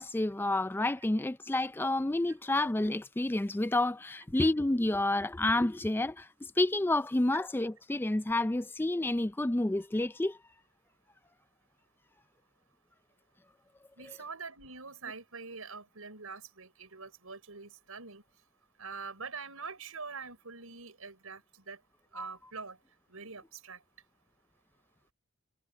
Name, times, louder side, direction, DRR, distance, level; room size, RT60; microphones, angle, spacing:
voice 1, 0.0-6.3 6.6-10.4 22.2-22.3, left 2 dB, 10° left, 0.4 m, -29 dB
voice 2, 14.0-18.2 18.8-21.8 22.1-22.8 23.1-23.8, right 4 dB, 85° right, 5.5 m, -44 dB
head